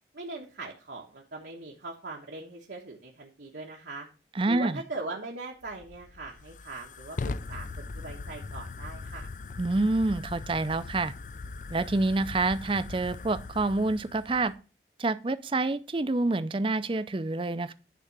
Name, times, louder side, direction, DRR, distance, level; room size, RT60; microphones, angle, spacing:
voice 1, 0.1-4.1 4.5-7.2 7.5-9.3, right 2 dB, 80° right, 1.2 m, -40 dB
voice 2, 4.3-4.8 9.6-11.1 11.7-14.5 15.0-17.7, right 2 dB, 30° right, 0.5 m, -27 dB
Fire, 5.6-14.6, left 3 dB, 45° left, 0.4 m, -40 dB
10.0 x 3.7 x 7.3 m
head